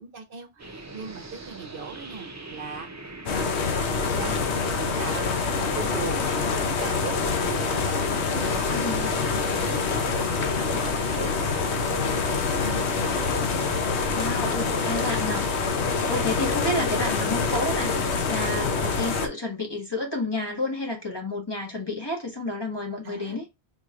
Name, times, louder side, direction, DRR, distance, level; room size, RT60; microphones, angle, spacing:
voice 1, 0.0-3.6 3.9-4.4 4.6-12.9 13.2-13.8 16.1-16.3 23.0-23.4, right 6 dB, 60° right, 0.9 m, -40 dB
sound 1, 0.6-15.5, right 2 dB, 25° right, 0.4 m, -43 dB
sound 2, 3.3-19.3, left 4 dB, 80° left, 1.0 m, -26 dB
voice 2, 8.7-9.1 14.1-15.5 16.1-23.4, left 1 dB, 25° left, 1.1 m, -30 dB
4.0 x 3.0 x 2.4 m
omnidirectional pair, 1.1 m